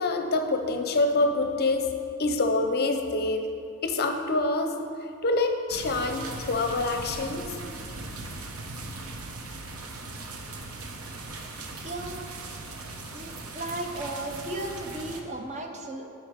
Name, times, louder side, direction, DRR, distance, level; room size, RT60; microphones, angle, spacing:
voice 1, 0.0-1.9 2.2-3.4 3.8-4.8 5.2-7.5, left 2 dB, 45° left, 6 dB, 0.6 m, -26 dB
sound 1, 5.7-15.2, right 2 dB, 70° right, 0.8 m, -39 dB
voice 2, 11.8-12.3 13.1-16.1, right 1 dB, 30° right, 3 dB, 0.7 m, -35 dB
10.5 x 4.5 x 5.0 m, 2.6 s
head